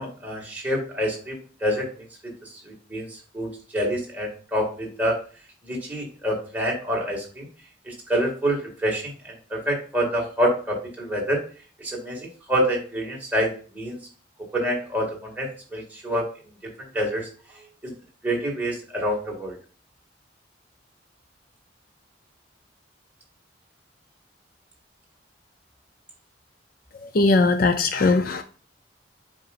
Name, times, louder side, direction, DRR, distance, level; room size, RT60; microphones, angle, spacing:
voice 1, 0.0-1.9 2.2-2.3 2.6-5.2 5.6-7.5 7.9-11.4 11.8-14.0 14.5-16.3 16.9-17.3 17.8-17.9 18.2-19.6, equal, 10° right, -3 dB, 2.1 m, -27 dB
voice 2, 27.0-28.4, left 3 dB, 50° left, 8 dB, 0.5 m, -20 dB
7.6 x 5.2 x 2.5 m, 0.39 s
head